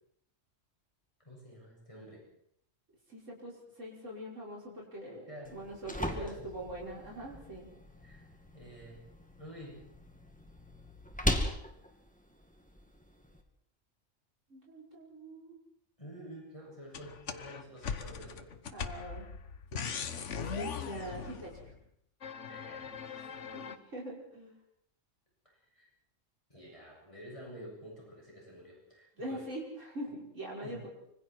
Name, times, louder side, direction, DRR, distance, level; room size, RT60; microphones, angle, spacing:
voice 1, 1.2-2.2 5.3-5.6 5.9-6.5 8.0-8.3 8.5-9.0 9.4-9.9 16.0-18.5 22.5-23.5 25.4-25.9 26.5-29.4 30.6-30.9, equal, 25° left, -3 dB, 7.8 m, -49 dB
voice 2, 3.1-7.7 14.5-15.6 18.7-19.3 19.7-21.7 23.5-24.5 29.2-30.9, right 1 dB, 70° right, -3 dB, 6.1 m, -43 dB
sound 1, 5.4-13.4, left 1 dB, 5° left, 2.4 m, -39 dB
sound 2, 16.9-21.7 22.2-23.8, left 6 dB, 70° left, 1.5 m, -40 dB
25.5 x 25.5 x 4.7 m, 0.72 s
omnidirectional pair, 1.3 m